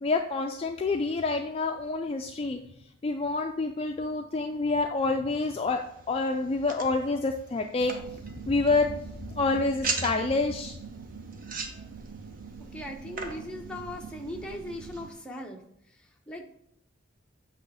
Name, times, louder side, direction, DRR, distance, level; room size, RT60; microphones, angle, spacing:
voice 1, 0.0-2.6 3.0-8.2 8.5-8.9 9.4-10.8, left 3 dB, 30° left, 4 dB, 0.3 m, -27 dB
sound 1, 5.4-15.2, right 4 dB, 45° right, 0.8 m, -41 dB
sound 2, 7.8-15.1, right 5 dB, 90° right, 0.5 m, -44 dB
voice 2, 12.7-15.6 16.3-16.4, left 1 dB, 5° left, 0 dB, 0.7 m, -38 dB
8.2 x 3.1 x 4.9 m, 0.71 s
head